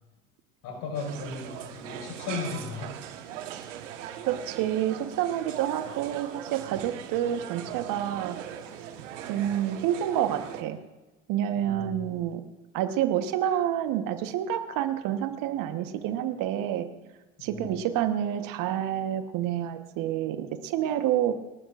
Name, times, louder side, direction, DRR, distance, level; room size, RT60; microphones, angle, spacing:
voice 1, 0.6-3.0 9.4-9.5 11.6-12.2 17.4-17.7, left 4 dB, 65° left, 0 dB, 5.2 m, -36 dB
sound 1, 0.9-10.6, right 10 dB, 80° right, 1.4 m, -40 dB
voice 2, 4.3-8.4 9.3-10.8 11.3-12.4 12.7-16.9 17.4-21.4, right 11 dB, 60° right, 9 dB, 1.3 m, -28 dB
29.5 x 12.0 x 2.5 m, 1.1 s
hypercardioid pair, 70°, 37 cm